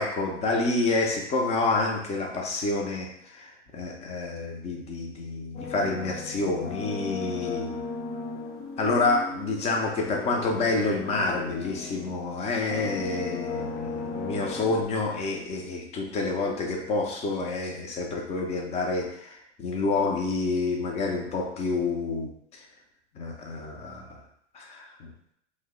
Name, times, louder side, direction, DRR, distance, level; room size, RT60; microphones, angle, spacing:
voice 1, 0.0-7.8 8.8-22.6 23.2-24.2 24.5-25.1, left 3 dB, 20° left, 1 dB, 0.4 m, -28 dB
sound 1, 5.5-12.3 12.6-14.8, left 4 dB, 50° left, 0.7 m, -36 dB
2.5 x 2.1 x 3.7 m, 0.71 s
hypercardioid pair, 115°, 37 cm